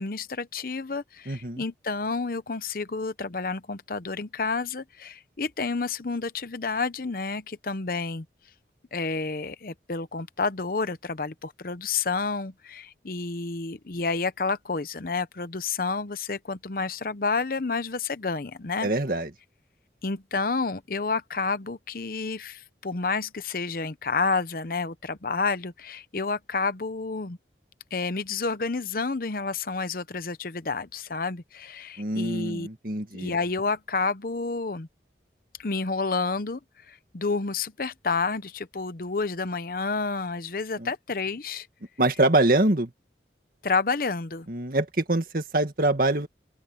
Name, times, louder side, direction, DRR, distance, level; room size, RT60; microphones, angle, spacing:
voice 1, 0.0-8.2 8.9-18.9 20.0-27.4 27.9-32.7 33.1-34.9 35.6-36.6 36.9-41.7 43.6-44.5, left 4 dB, 50° left, 0.8 m, -30 dB
voice 2, 1.3-1.6 18.8-19.3 32.0-33.3 40.8-40.9 42.0-42.9 44.5-46.3, right 2 dB, 55° right, 2.1 m, -24 dB
open air
head